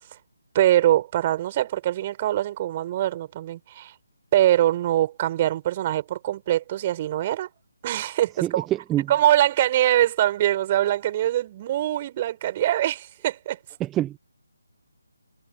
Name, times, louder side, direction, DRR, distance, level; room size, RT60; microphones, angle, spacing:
voice 1, 0.5-3.9 4.3-7.5 7.8-8.7 9.1-13.6, right 13 dB, 30° right, 5.4 m, -23 dB
voice 2, 8.4-9.1 13.8-14.2, right 13 dB, 10° right, 0.9 m, -25 dB
figure-of-eight pair, 150°, 0 cm